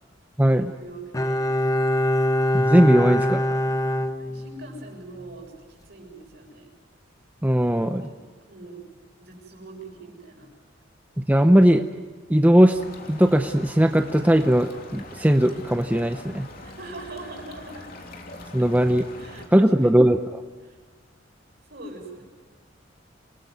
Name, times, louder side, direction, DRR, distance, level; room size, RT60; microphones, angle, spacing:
voice 1, 0.4-1.5 4.2-5.5 5.8-6.7 7.7-8.8 9.2-10.5 16.6-17.9 19.1-20.0 20.6-20.8 21.6-22.2, right 2 dB, 60° right, 1 dB, 7.1 m, -42 dB
Bowed string instrument, 1.1-4.9 5.2-5.3, left 1 dB, 20° left, 0.9 m, -23 dB
voice 2, 2.5-3.4 7.4-8.0 11.3-11.8 12.3-12.8 13.1-16.5 18.5-19.0 19.5-20.2, equal, 10° right, 6 dB, 0.7 m, -18 dB
sound 1, 12.7-19.5, left 2 dB, 50° left, 3.1 m, -43 dB
27.5 x 19.0 x 9.4 m, 1.5 s
head